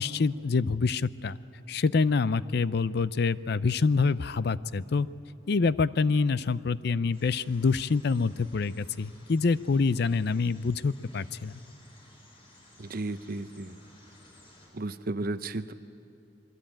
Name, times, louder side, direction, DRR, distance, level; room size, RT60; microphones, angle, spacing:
voice 1, 0.0-1.4 1.7-5.1 5.5-11.5, left 4 dB, 55° left, 16 dB, 0.5 m, -26 dB
sound 1, 7.1-14.7, left 1 dB, 30° left, 6.4 m, -56 dB
voice 2, 12.8-13.8 14.7-15.7, right 2 dB, 50° right, 12 dB, 0.7 m, -34 dB
27.0 x 22.0 x 8.9 m, 2.6 s
head